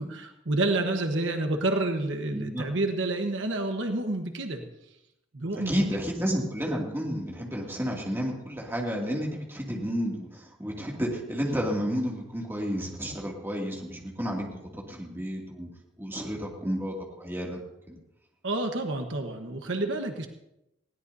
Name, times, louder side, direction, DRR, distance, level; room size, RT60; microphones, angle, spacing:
voice 1, 0.0-4.6 5.3-6.0 18.4-20.3, right 2 dB, 70° right, 5 dB, 1.2 m, -29 dB
voice 2, 2.3-2.7 5.7-15.7 16.0-17.6 17.9-18.0, equal, 10° right, -2 dB, 2.5 m, -31 dB
20.5 x 16.5 x 2.8 m, 0.87 s
head